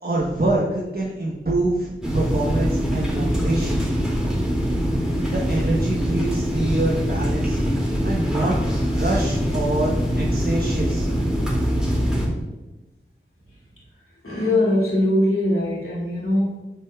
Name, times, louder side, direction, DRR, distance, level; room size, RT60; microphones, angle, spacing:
voice 1, 0.0-4.1 5.3-7.6 8.0-11.1, right 2 dB, 50° right, -4 dB, 1.1 m, -25 dB
sound 1, 2.0-12.3, equal, 5° right, 2.5 m, -23 dB
voice 2, 14.2-16.6, left 1 dB, 90° left, -7 dB, 2.4 m, -21 dB
9.2 x 6.7 x 2.4 m, 1.1 s
wide cardioid pair, 50°, 21 cm